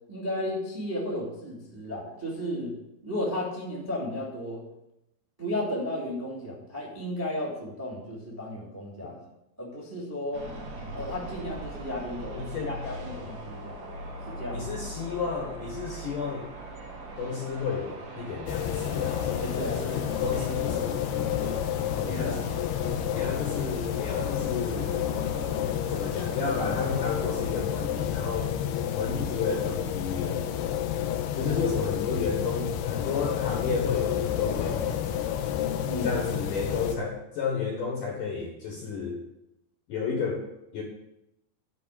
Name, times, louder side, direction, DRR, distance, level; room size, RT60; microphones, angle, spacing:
voice 1, 0.1-2.7 3.0-4.6 5.4-9.2 9.6-10.5 10.9-12.4 12.6-13.8 14.3-14.7 19.4-19.8 21.9-22.4 31.4-31.7 35.9-36.1, left 1 dB, 10° right, -3 dB, 1.6 m, -34 dB
sound 1, 10.3-27.7, right 1 dB, 60° right, 3.9 m, -41 dB
voice 2, 12.4-13.3 14.5-16.5 17.2-21.6 22.0-22.5 23.1-25.0 25.9-28.5 29.0-30.8 31.4-35.2 36.0-39.2 39.9-40.4 40.7-40.8, left 5 dB, 60° left, 0 dB, 2.5 m, -32 dB
sound 2, 18.5-37.0, left 10 dB, 80° left, 2.5 m, -30 dB
11.5 x 4.8 x 8.4 m, 0.87 s
omnidirectional pair, 5.2 m